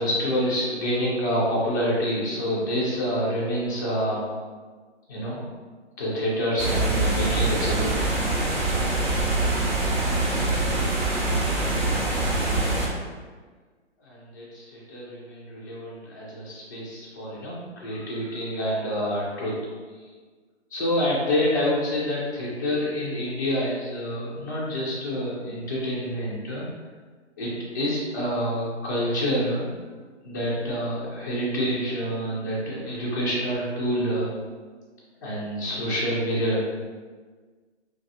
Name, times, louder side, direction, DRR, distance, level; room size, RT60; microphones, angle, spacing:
voice 1, 0.0-4.2 5.1-5.4 6.0-7.9 14.1-19.5 20.7-26.6 27.4-29.7 30.2-34.3 35.2-36.6, equal, 20° left, -8 dB, 0.3 m, -27 dB
sound 1, 6.6-12.9, right 2 dB, 60° right, 1.0 m, -24 dB
2.8 x 2.2 x 2.6 m, 1.4 s
figure-of-eight pair, 130°, 35 cm